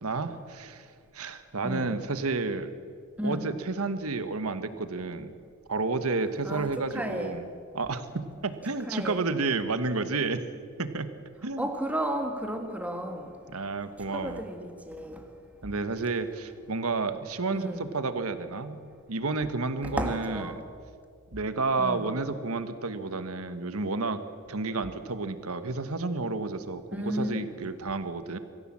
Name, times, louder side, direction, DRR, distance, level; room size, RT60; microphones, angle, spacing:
voice 1, 0.0-0.8 1.1-2.7 3.2-5.3 5.7-7.4 7.7-10.4 10.8-11.1 11.4-11.7 13.5-14.4 15.6-18.8 19.1-20.4 21.3-24.2 24.5-28.4, right 3 dB, 75° right, 1.3 m, -31 dB
voice 2, 1.6-1.9 3.2-3.5 6.4-7.5 8.9-9.2 11.6-13.3 14.1-15.2 17.5-17.9 19.8-20.6 21.8-22.1 26.9-27.5, equal, 5° right, 1.8 m, -33 dB
24.0 x 15.0 x 7.5 m
head